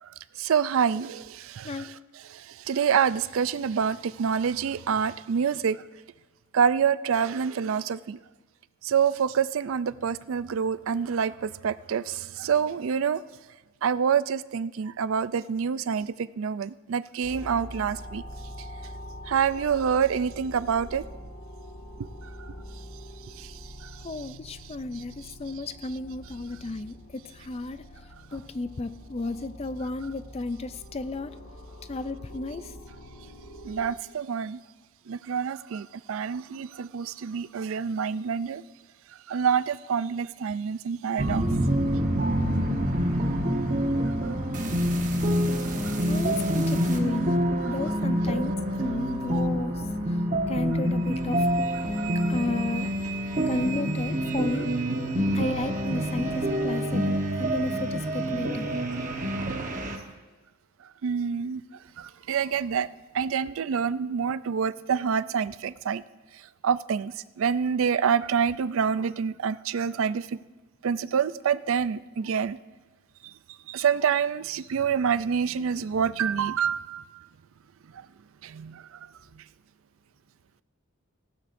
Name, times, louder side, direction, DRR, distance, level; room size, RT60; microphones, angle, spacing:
voice 1, 0.4-5.8 6.5-8.2 8.8-13.2 13.8-18.2 19.3-21.0 22.0-22.1 22.4-22.5 23.4-23.5 23.8-24.4 24.9-25.0 33.6-34.6 35.1-38.6 39.3-41.4 45.8-46.0 47.7-47.8 52.0-52.1 61.0-61.6 62.0-62.9 63.1-66.0 66.6-70.4 70.8-72.6 73.2-73.3 73.7-77.0 78.4-79.0 79.4-79.5, right 7 dB, 70° right, 16 dB, 0.4 m, -27 dB
sound 1, 17.2-33.9, equal, 85° left, 1.9 m, -44 dB
voice 2, 24.0-25.1 25.4-27.8 28.3-31.3 31.9-32.6 46.1-47.3 47.6-48.5 48.8-49.7 50.5-51.5 52.3-52.9 53.5-54.7 55.3-58.7, left 2 dB, 30° left, 13 dB, 0.4 m, -33 dB
sound 2, 41.2-60.0, equal, 35° right, 1.1 m, -27 dB
18.5 x 15.5 x 2.6 m, 1.2 s
head